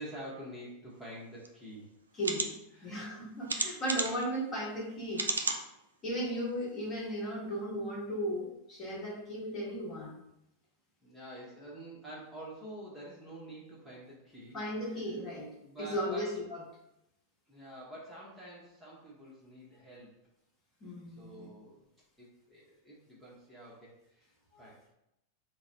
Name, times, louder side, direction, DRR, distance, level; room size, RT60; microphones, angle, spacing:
voice 1, 0.0-1.9 2.3-2.4 2.7-3.3 11.0-15.0 15.6-16.3 17.5-20.2 21.2-21.9 22.2-24.8, right 1 dB, ahead, -8 dB, 1.0 m, -48 dB
sound 1, 1.4-1.5 2.2-2.5 3.5-4.2 5.1-5.6 6.2-6.3 6.6-6.7, right 4 dB, 75° right, 0.4 m, -32 dB
voice 2, 2.1-2.5 2.8-5.3 6.0-10.1 14.5-16.6 20.8-21.5 24.5-24.7, equal, 30° left, -4 dB, 1.3 m, -36 dB
3.7 x 2.2 x 4.3 m, 0.83 s
figure-of-eight pair, 90°, 0 cm